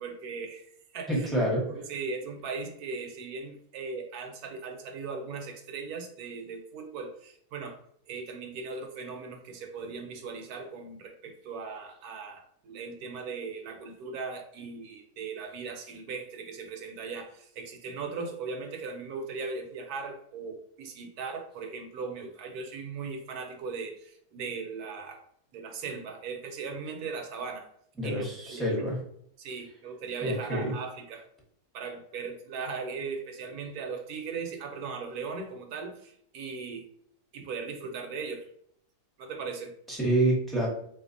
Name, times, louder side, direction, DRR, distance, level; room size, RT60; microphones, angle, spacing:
voice 1, 0.0-1.3 1.7-7.8 8.1-25.2 25.5-27.7 28.0-28.6 29.4-31.3 31.7-36.8 37.3-38.5 39.2-39.7, right 4 dB, 75° right, 4 dB, 1.1 m, -38 dB
voice 2, 1.1-1.7 28.0-29.0 30.2-30.7 39.9-40.7, right 1 dB, ahead, -5 dB, 0.7 m, -27 dB
3.9 x 2.5 x 2.6 m, 0.67 s
omnidirectional pair, 1.7 m